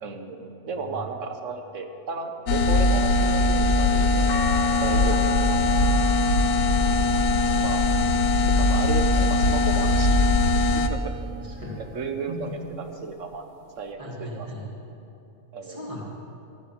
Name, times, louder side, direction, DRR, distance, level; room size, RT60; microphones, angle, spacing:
voice 1, 0.0-4.4 4.8-5.8 7.6-7.8 8.5-10.2 10.7-11.2 11.8-13.4 13.8-14.5 15.5-15.9, right 4 dB, 60° right, 5 dB, 1.3 m, -34 dB
sound 1, 2.5-10.9, left 2 dB, 80° left, 1.2 m, -21 dB
sound 2, 4.3-10.6 11.2-12.5 13.9-14.0, left 1 dB, 60° left, 1.2 m, -37 dB
voice 2, 11.4-11.8 12.3-12.4 14.0-14.6 15.6-16.0, equal, 20° right, -4 dB, 2.6 m, -38 dB
13.5 x 9.2 x 6.9 m, 2.8 s
omnidirectional pair, 1.6 m